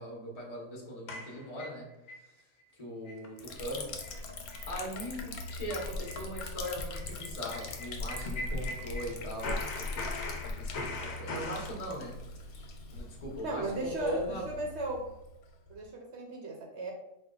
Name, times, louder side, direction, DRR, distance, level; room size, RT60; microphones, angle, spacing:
voice 1, 0.0-1.9 2.2-2.3 2.7-3.9 4.7-12.1 12.9-14.4, equal, 30° left, -3 dB, 0.8 m, -40 dB
sound 1, 1.1-2.2 2.6-2.7 3.1-3.3 3.6-3.7 4.0-4.2 4.5-4.7 5.0-5.1 5.5-9.1 9.4-11.7, left 2 dB, 70° left, 1.1 m, -41 dB
Liquid, 3.4-15.8, left 3 dB, 90° left, 1.1 m, -40 dB
voice 2, 13.4-15.1 15.7-16.9, right 2 dB, 60° right, 0 dB, 0.8 m, -36 dB
4.4 x 2.2 x 3.7 m, 0.91 s
omnidirectional pair, 1.5 m